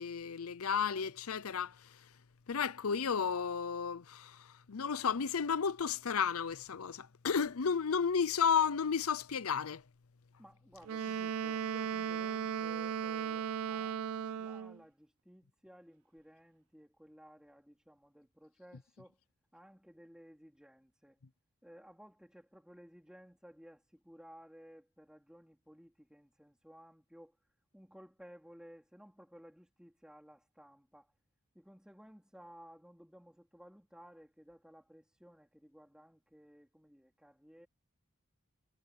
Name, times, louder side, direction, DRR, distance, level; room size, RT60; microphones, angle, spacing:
voice 1, 0.0-1.7 2.5-4.4 4.7-9.8, left 6 dB, 85° left, 0.6 m, -32 dB
voice 2, 10.4-19.2 19.5-21.2 21.6-27.4 27.7-31.1 31.5-37.7, equal, 5° right, 3.6 m, -57 dB
Wind instrument woodwind instrument, 10.9-14.8, right 8 dB, 90° right, 0.4 m, -36 dB
head